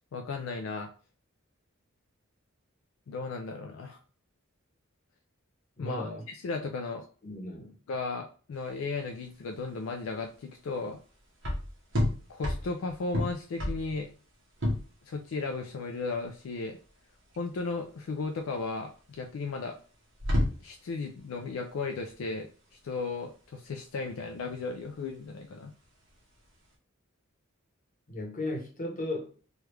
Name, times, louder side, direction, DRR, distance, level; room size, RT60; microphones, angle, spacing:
voice 1, 0.1-0.9 3.1-4.0 5.8-6.1 6.4-7.0 7.9-11.0 12.3-14.1 15.1-16.8 17.4-19.8 20.6-22.5 22.8-25.7, left 3 dB, 70° left, 0.4 m, -35 dB
voice 2, 5.8-6.3 7.2-7.7 28.1-29.4, left 1 dB, 40° left, 0.9 m, -36 dB
sound 1, 8.5-26.7, left 1 dB, 60° right, 1.0 m, -35 dB
3.1 x 2.4 x 3.1 m
head